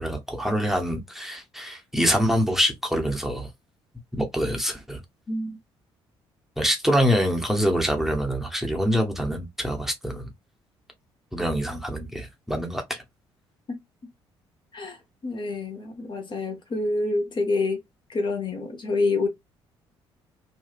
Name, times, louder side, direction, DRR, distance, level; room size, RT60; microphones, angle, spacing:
voice 1, 0.0-3.5 4.1-5.0 6.6-10.3 11.3-13.0, equal, ahead, 0.8 m, -25 dB
voice 2, 5.3-5.6 14.7-17.8 18.1-19.3, left 3 dB, 35° left, 0.8 m, -27 dB
2.7 x 2.3 x 2.4 m
figure-of-eight pair, 45°, 14 cm